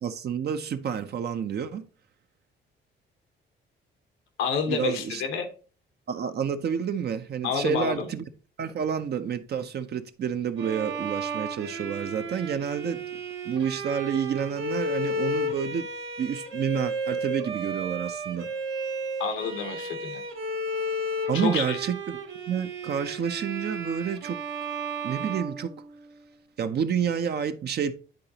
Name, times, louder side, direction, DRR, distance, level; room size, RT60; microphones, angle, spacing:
voice 1, 0.0-1.9 4.7-5.2 6.1-8.3 8.6-13.2 13.4-15.9 16.2-18.5 21.3-24.4 25.0-25.7 26.6-27.9, right 7 dB, 55° right, 0.6 m, -29 dB
voice 2, 4.4-5.5 7.4-8.1 19.2-20.2 21.3-21.8, left 6 dB, 90° left, 1.2 m, -29 dB
Bowed string instrument, 10.6-26.3, right 1 dB, 80° right, 1.6 m, -33 dB
10.5 x 3.9 x 2.8 m
cardioid pair, 90°, 20 cm